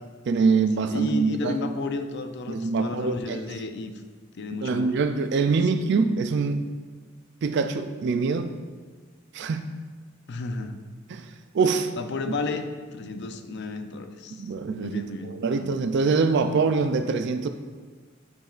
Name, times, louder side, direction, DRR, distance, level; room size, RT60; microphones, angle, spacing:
voice 1, 0.3-1.7 2.5-3.4 4.6-6.6 7.4-8.6 9.3-9.7 11.1-11.3 11.5-11.9 14.4-17.5, right 4 dB, 60° right, 8 dB, 0.4 m, -24 dB
voice 2, 0.8-3.9 4.4-4.9 5.4-5.8 10.3-10.8 12.0-14.5 14.8-15.7, left 3 dB, 60° left, 8 dB, 0.5 m, -33 dB
10.5 x 5.3 x 2.4 m, 1.4 s
head